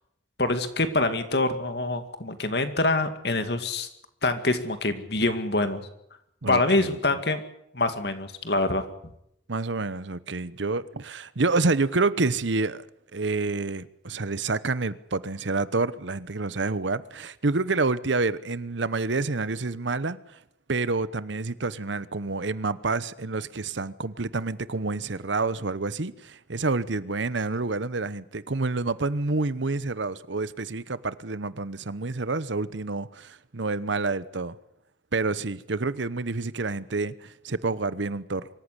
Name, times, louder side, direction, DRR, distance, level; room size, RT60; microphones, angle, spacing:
voice 1, 0.4-3.9 4.2-5.9 6.5-7.4 7.7-8.9, left 2 dB, 60° left, 2.3 m, -25 dB
voice 2, 6.4-7.0 9.5-12.8 13.1-20.4 20.7-34.6 35.1-38.5, right 3 dB, 75° right, 1.0 m, -28 dB
24.5 x 14.5 x 9.9 m
head